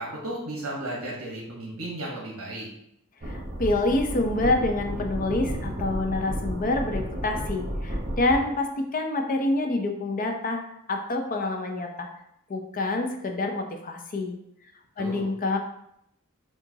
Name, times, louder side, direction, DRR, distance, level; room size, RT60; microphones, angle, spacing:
voice 1, 0.0-2.7 15.0-15.2, right 1 dB, 70° right, -3 dB, 1.1 m, -34 dB
voice 2, 3.2-10.6 10.9-12.1 12.5-14.4 15.0-15.6, left 2 dB, 40° left, 4 dB, 0.6 m, -27 dB
sound 1, 3.2-8.4, equal, 50° right, 0.9 m, -32 dB
6.6 x 2.5 x 2.7 m, 0.75 s
head